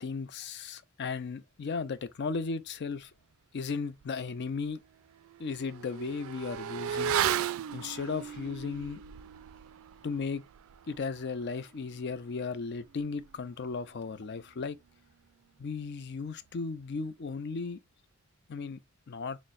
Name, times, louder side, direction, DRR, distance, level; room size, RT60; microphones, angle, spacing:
voice 1, 0.0-3.1 3.5-4.8 5.4-7.2 7.7-9.0 10.0-10.4 10.9-14.8 15.6-17.8 18.5-18.8 19.1-19.4, left 4 dB, 55° left, 0.4 m, -35 dB
Motorcycle / Accelerating revving vroom, 4.0-4.1 4.5-14.5 14.8-14.9, right 9 dB, 70° right, 0.3 m, -37 dB
5.8 x 2.0 x 2.4 m
head